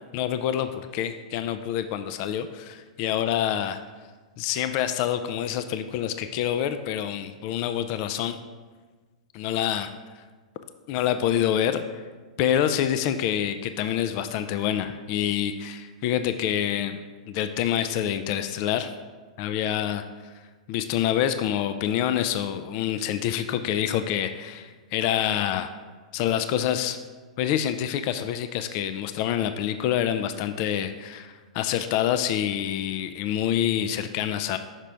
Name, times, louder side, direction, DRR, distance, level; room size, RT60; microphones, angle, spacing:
voice 1, 0.1-3.8 4.4-8.4 9.3-9.9 10.9-12.0 12.4-17.0 17.3-18.9 19.4-20.3 20.7-25.7 26.1-27.0 27.4-34.6, left 10 dB, 45° left, 10 dB, 0.3 m, -27 dB
5.8 x 4.9 x 3.3 m, 1.4 s
hypercardioid pair, 120°, 4 cm